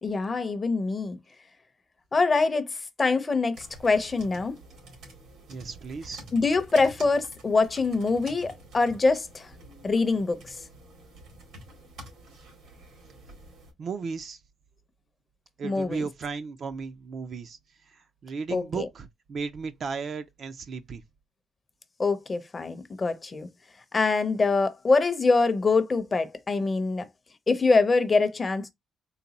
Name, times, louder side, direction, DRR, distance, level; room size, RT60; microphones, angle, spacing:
voice 1, 0.0-1.2 2.1-2.7 3.0-4.6 6.3-9.5 9.8-10.6 15.6-16.0 18.5-18.9 22.0-23.5 23.9-27.1 27.5-28.7, left 3 dB, 25° left, 0.6 m, -24 dB
sound 1, 3.5-13.7, right 1 dB, 85° right, 2.1 m, -48 dB
voice 2, 5.5-6.2 13.8-14.4 15.6-17.6 17.9-21.0, right 5 dB, 45° right, 0.4 m, -35 dB
4.0 x 2.2 x 4.0 m
cardioid pair, 155°, 0 cm